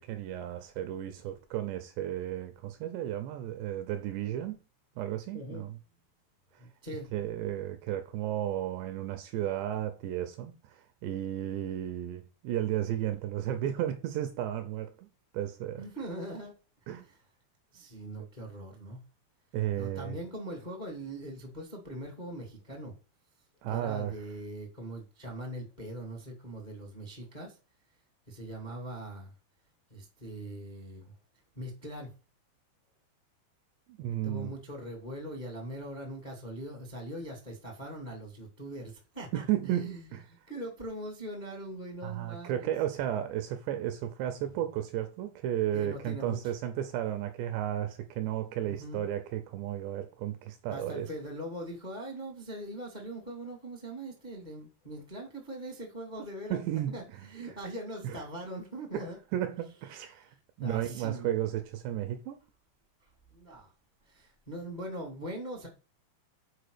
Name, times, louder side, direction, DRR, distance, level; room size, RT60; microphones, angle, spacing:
voice 1, 0.0-4.6 5.0-5.8 7.1-15.1 15.3-15.8 16.9-17.1 19.5-20.2 23.6-24.1 33.9-34.5 39.3-40.2 42.0-51.1 56.5-57.0 58.0-58.2 58.9-59.1 59.3-60.3 60.6-62.4, right 12 dB, 80° right, 2.6 m, -33 dB
voice 2, 5.3-5.7 6.6-7.1 15.8-16.5 17.0-17.2 17.7-19.0 19.8-22.9 23.6-27.6 28.3-29.3 29.9-31.1 31.5-32.1 34.2-42.7 44.4-44.5 45.7-46.5 48.7-49.1 50.7-56.6 56.9-59.2 60.2-60.3 60.6-61.4 63.3-63.7 64.0-65.7, right 1 dB, 30° left, 0.7 m, -41 dB
7.7 x 4.8 x 6.7 m
omnidirectional pair, 5.6 m